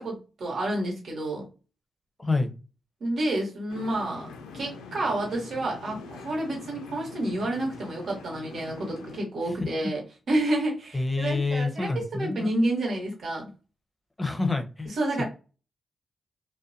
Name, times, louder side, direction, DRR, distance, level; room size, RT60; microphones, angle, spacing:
voice 1, 0.0-1.4 3.0-4.3 4.5-10.0 10.3-13.5 14.9-15.2, right 1 dB, 65° right, -2 dB, 1.2 m, -29 dB
voice 2, 2.2-2.5 10.9-12.5 14.2-14.9 15.2-15.3, left 3 dB, 20° left, 6 dB, 0.6 m, -27 dB
sound 1, 3.7-9.2, left 4 dB, 90° left, 0.4 m, -43 dB
2.5 x 2.1 x 2.6 m, 0.32 s
supercardioid pair, 45°, 0 cm